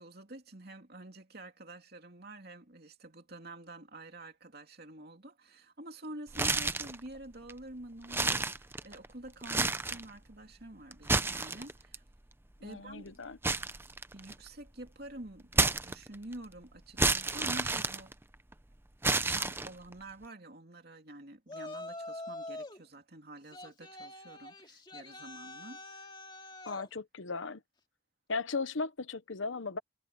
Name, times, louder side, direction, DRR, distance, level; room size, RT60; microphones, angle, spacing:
voice 1, 0.0-8.5 8.8-12.0 12.6-13.3 14.1-18.2 19.1-26.1, right 1 dB, 50° right, 2.9 m, -48 dB
sound 1, 6.3-7.0 7.5-7.6 8.0-9.1 9.4-10.1 10.9-12.0 13.4-14.5 15.5-16.3 17.0-18.5 19.0-19.9, right 3 dB, 10° right, 0.6 m, -30 dB
voice 2, 12.6-13.4 26.6-27.6 28.3-29.8, left 4 dB, 80° left, 1.0 m, -36 dB
Yell, 21.5-22.8 23.5-26.9, left 2 dB, 25° left, 2.3 m, -45 dB
head